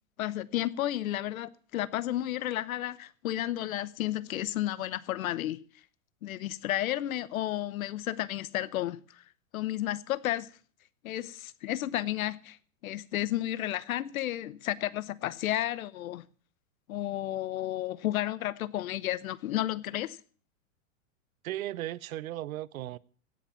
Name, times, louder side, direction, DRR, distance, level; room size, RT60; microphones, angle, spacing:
voice 1, 0.2-5.6 6.2-9.2 9.5-10.5 11.0-12.6 12.8-16.2 16.9-20.2, left 14 dB, 80° left, 1.0 m, -32 dB
voice 2, 21.4-23.0, right 14 dB, 85° right, 0.8 m, -36 dB
17.0 x 7.3 x 7.0 m
supercardioid pair, 135°, 41 cm